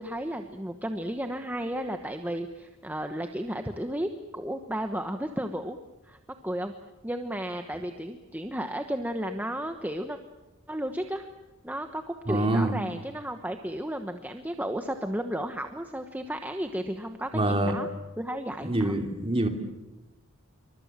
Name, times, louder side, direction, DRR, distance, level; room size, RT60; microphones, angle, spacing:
voice 1, 0.0-5.8 6.1-6.2 6.4-6.7 7.0-10.2 10.7-11.3 11.6-17.9 18.2-18.9, right 1 dB, 10° right, 6 dB, 1.1 m, -33 dB
voice 2, 12.3-12.8 17.3-17.8 18.6-19.5, right 1 dB, 25° right, 4 dB, 3.1 m, -25 dB
28.0 x 24.5 x 7.4 m, 1.1 s
head